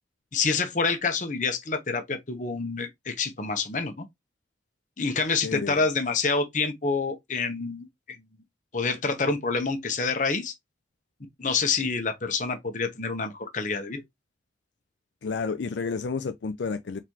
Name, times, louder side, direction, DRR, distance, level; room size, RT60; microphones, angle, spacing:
voice 1, 0.3-4.0 5.0-8.2 8.7-10.5 11.4-14.0, left 4 dB, 45° left, 1.0 m, -27 dB
voice 2, 5.4-5.8 15.2-17.0, left 4 dB, 80° left, 0.5 m, -30 dB
4.3 x 4.0 x 3.1 m
head